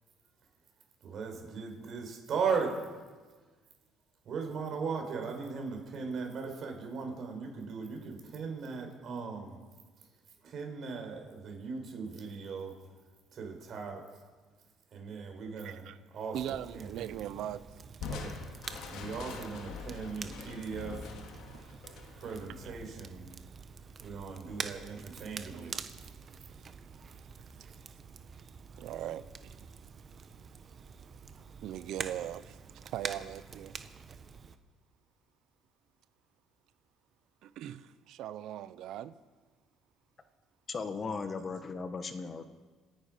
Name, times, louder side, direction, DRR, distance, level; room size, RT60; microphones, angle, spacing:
voice 1, 1.0-3.0 4.2-9.6 10.4-12.8 13.3-14.1 14.9-16.9 18.1-18.4 18.9-21.1 22.2-23.3 24.0-25.8, right 5 dB, 55° right, 4.6 m, -38 dB
voice 2, 15.6-16.0 16.3-17.6 20.2-20.3 21.5-21.8 22.6-22.7 25.5-26.1 26.5-27.7 28.8-29.6 31.0-33.7 37.4-39.1, right 11 dB, 70° right, 0.8 m, -41 dB
Crackle, 16.3-34.6, right 5 dB, 40° right, 1.0 m, -46 dB
Crushing, 18.0-23.4, left 5 dB, 75° left, 2.3 m, -44 dB
voice 3, 40.7-42.4, left 4 dB, 35° left, 1.4 m, -37 dB
27.5 x 10.0 x 5.2 m
cardioid pair, 110°, 0 cm